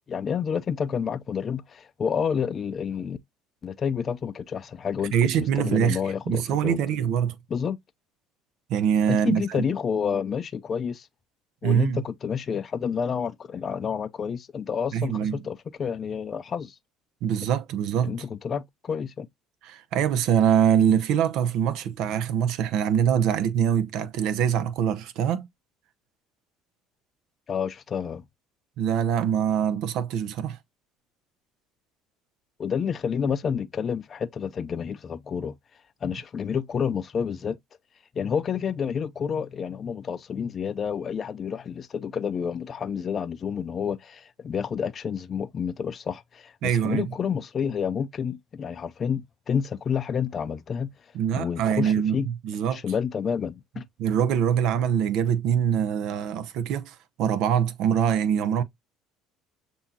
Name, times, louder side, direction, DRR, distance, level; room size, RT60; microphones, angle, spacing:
voice 1, 0.1-3.2 3.6-6.8 7.5-7.8 9.1-11.1 11.6-16.8 18.0-19.3 27.5-28.2 32.6-35.6 36.0-37.6 38.2-50.9 51.3-52.3 52.7-53.8, left 7 dB, 40° left, 0.4 m, -29 dB
voice 2, 5.1-6.0 6.3-7.4 8.7-9.6 11.6-12.0 14.9-15.5 17.2-18.2 19.6-25.5 28.8-30.6 46.6-47.1 51.1-52.8 54.0-58.6, right 8 dB, 70° right, 0.7 m, -24 dB
6.9 x 2.7 x 2.7 m
supercardioid pair, 85°, 0 cm